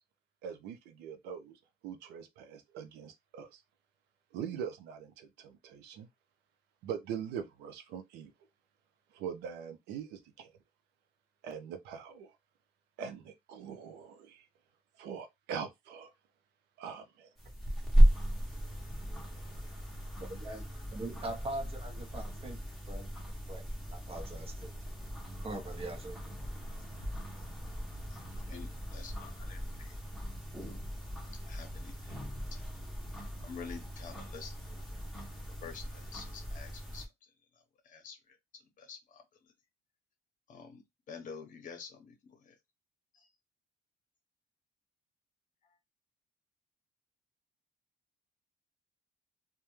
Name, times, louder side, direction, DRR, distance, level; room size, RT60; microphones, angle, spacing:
voice 1, 0.4-3.6 4.3-6.1 6.8-8.3 9.1-10.5 11.4-12.3 13.0-14.5 15.0-16.1 16.8-17.3, right 8 dB, 90° right, 0.5 m, -42 dB
sound 1, 17.4-37.1, equal, ahead, 0.8 m, -34 dB
voice 2, 20.2-20.6 20.9-22.6 22.9-23.1 23.5-23.7 23.9-24.7 25.4-26.2, right 2 dB, 35° right, 0.7 m, -41 dB
voice 3, 28.1-30.0 30.6-30.8 31.3-32.2 32.5-32.6 33.4-34.7 35.4-37.1 37.8-39.2 40.5-42.5 43.1-43.3 45.6-45.8, left 6 dB, 50° left, 0.8 m, -49 dB
2.2 x 2.0 x 3.0 m
cardioid pair, 110°, 17 cm